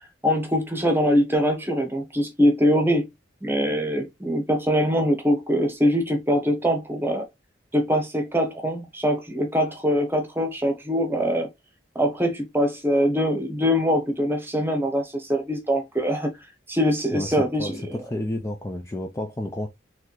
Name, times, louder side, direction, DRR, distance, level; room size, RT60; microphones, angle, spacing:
voice 1, 0.2-3.1 3.4-7.2 7.7-11.5 11.9-16.3 16.7-17.8, equal, 10° right, 0.9 m, -23 dB
voice 2, 17.1-19.7, left 1 dB, 15° left, 0.4 m, -31 dB
4.1 x 3.2 x 3.0 m
head